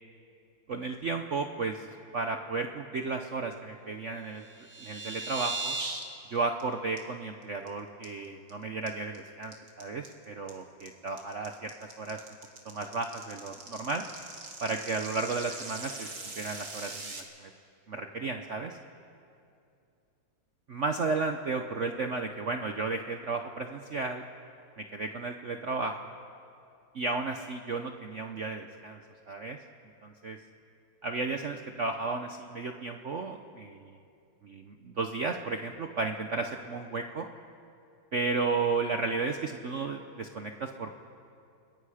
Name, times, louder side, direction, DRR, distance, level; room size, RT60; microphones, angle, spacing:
voice 1, 0.7-1.9 2.1-4.4 4.8-5.8 6.3-11.7 12.0-12.2 12.6-14.0 14.6-16.1 16.4-17.5 17.9-18.8 20.7-24.2 24.8-26.1 26.9-29.0 29.3-29.6 30.0-30.4 31.0-34.0 34.4-37.3 38.1-40.9, right 3 dB, 60° right, 5 dB, 0.7 m, -33 dB
sound 1, 4.4-6.0 6.4-6.6 7.0-7.1 7.4-7.7 8.0-8.5 8.9-17.2, right 3 dB, 40° right, 2.2 m, -39 dB
28.5 x 20.5 x 5.0 m, 2.6 s
omnidirectional pair, 2.3 m